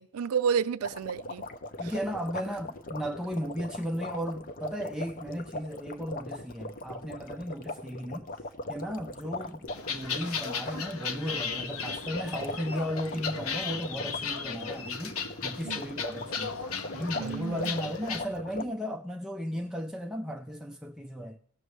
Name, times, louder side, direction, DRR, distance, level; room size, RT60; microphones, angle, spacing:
voice 1, 0.0-1.5 1.8-1.9 15.6-15.8 17.2-17.9, right 7 dB, 80° right, 0.4 m, -31 dB
sound 1, 0.8-18.6, left 2 dB, 40° left, 0.7 m, -40 dB
voice 2, 1.8-8.3 8.7-15.1 15.4-16.6 16.9-21.4, equal, 5° right, 0.5 m, -35 dB
sound 2, 9.7-18.2, left 6 dB, 70° left, 0.9 m, -36 dB
17.5 x 6.6 x 3.2 m
head